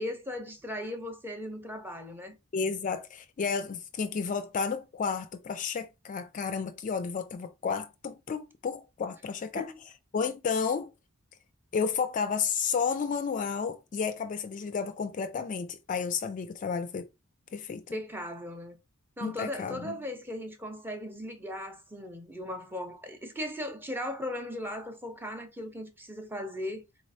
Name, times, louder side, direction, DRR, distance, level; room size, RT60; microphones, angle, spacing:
voice 1, 0.0-2.4 9.6-9.8 17.9-18.8 19.2-26.9, left 1 dB, 10° right, 0.6 m, -37 dB
voice 2, 2.5-9.7 10.1-10.9 11.7-17.1 17.5-18.0 19.2-20.0, left 5 dB, 35° left, 0.3 m, -32 dB
4.0 x 3.1 x 2.6 m
head